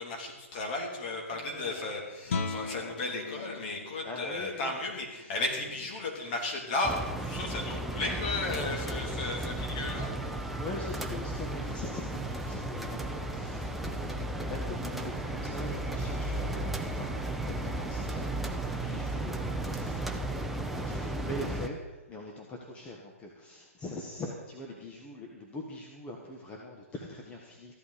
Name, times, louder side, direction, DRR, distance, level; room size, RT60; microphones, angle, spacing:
voice 1, 0.0-10.1, left 2 dB, 40° left, 1 dB, 3.3 m, -34 dB
voice 2, 1.3-2.1 2.7-2.9 4.0-4.7 5.2-5.3 10.5-27.8, left 1 dB, 15° left, 0 dB, 1.3 m, -43 dB
Guitar, 2.2-7.8, left 4 dB, 60° left, 1.5 m, -41 dB
sound 1, 6.8-21.7, right 1 dB, ahead, 0.8 m, -34 dB
15.0 x 11.0 x 5.1 m, 1.2 s
hypercardioid pair, 145°, 8 cm